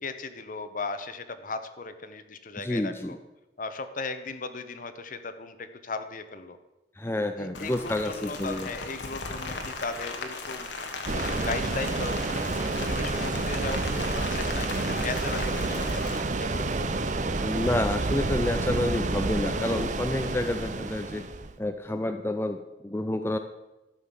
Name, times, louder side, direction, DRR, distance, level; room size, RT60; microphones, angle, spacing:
voice 1, 0.0-3.2 3.6-6.6 7.4-10.7 11.1-16.0 16.4-16.9, left 3 dB, 50° left, 10 dB, 1.0 m, -37 dB
voice 2, 2.6-3.2 7.0-8.7 17.4-21.2 21.6-23.4, left 1 dB, 15° left, 7 dB, 0.5 m, -29 dB
Rain, 7.5-16.2, left 3 dB, 85° left, 1.6 m, -37 dB
sound 1, 11.1-21.5, right 3 dB, 45° right, 0.7 m, -29 dB
13.0 x 5.8 x 7.4 m, 1.0 s
head